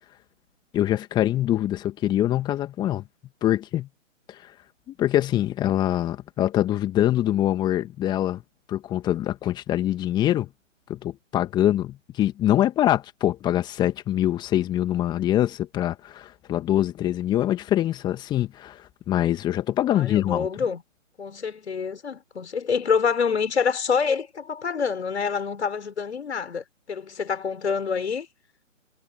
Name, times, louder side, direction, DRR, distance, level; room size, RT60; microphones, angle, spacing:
voice 1, 0.7-3.0 3.4-3.9 4.4-4.5 4.9-8.4 8.7-10.5 10.9-20.5, left 12 dB, 10° left, 2.0 m, -24 dB
voice 2, 19.9-20.8 21.2-28.3, left 6 dB, 55° left, 6.6 m, -26 dB
figure-of-eight pair, 145°, 39 cm